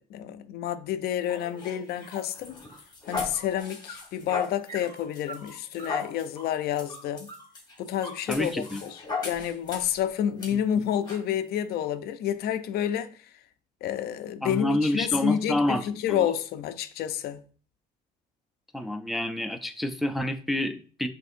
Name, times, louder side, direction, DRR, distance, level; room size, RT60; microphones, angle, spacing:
voice 1, 0.1-2.6 3.1-7.3 7.8-13.1 13.8-17.4, left 10 dB, 70° left, 0.4 m, -29 dB
sound 1, 1.3-10.0 10.4-10.5 11.1-11.2, left 4 dB, 25° left, 1.2 m, -37 dB
voice 2, 8.3-8.8 14.4-16.2 18.7-21.1, left 1 dB, ahead, 0.3 m, -28 dB
6.1 x 2.6 x 2.5 m
cardioid pair, 110°, 17 cm